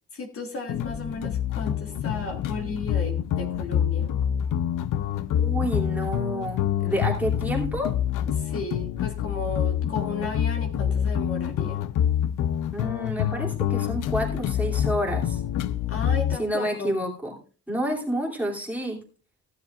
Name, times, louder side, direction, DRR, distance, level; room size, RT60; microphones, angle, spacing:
voice 1, 0.1-4.1 8.5-11.8 15.9-16.9, left 3 dB, 45° left, 3 dB, 1.7 m, -34 dB
sound 1, 0.7-16.4, left 10 dB, 85° left, 0.7 m, -26 dB
voice 2, 5.4-7.9 9.8-9.9 12.7-15.4 16.4-17.4 17.7-19.0, equal, 5° right, -2 dB, 2.7 m, -29 dB
15.5 x 10.5 x 2.4 m, 0.36 s
wide cardioid pair, 160°, 30 cm